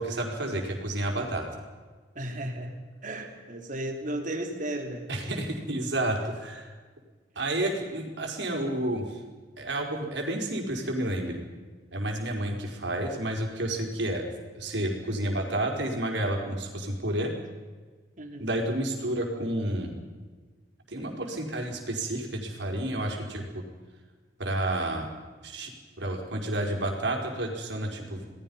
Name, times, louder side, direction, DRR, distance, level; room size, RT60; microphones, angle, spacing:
voice 1, 0.0-1.5 5.1-6.7 7.3-9.2 9.6-11.4 11.9-14.2 14.5-17.3 18.4-20.0 20.9-23.6 24.4-25.1 25.4-25.7 26.0-28.3, right 1 dB, 85° right, 1 dB, 4.9 m, -30 dB
voice 2, 2.1-2.7 3.0-5.3 18.2-18.5, right 1 dB, 45° right, 4 dB, 3.4 m, -35 dB
28.5 x 19.5 x 5.6 m, 1.4 s
head